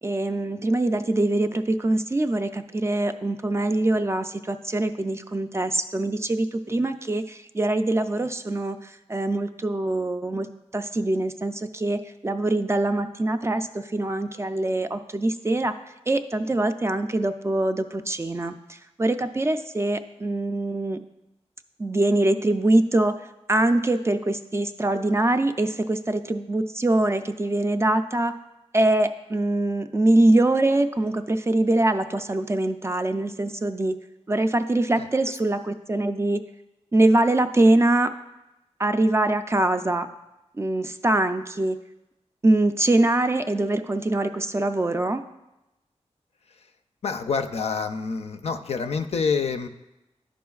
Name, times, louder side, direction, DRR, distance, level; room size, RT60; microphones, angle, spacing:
voice 1, 0.0-15.7 16.1-21.0 21.8-23.2 23.5-28.3 28.7-34.0 34.3-36.4 36.9-38.1 38.8-40.1 40.5-41.8 42.4-45.2, right 2 dB, 25° right, 8 dB, 0.3 m, -23 dB
voice 2, 47.0-49.7, left 5 dB, 65° left, 9 dB, 0.4 m, -27 dB
11.5 x 5.0 x 2.3 m, 0.95 s
wide cardioid pair, 105°, 12 cm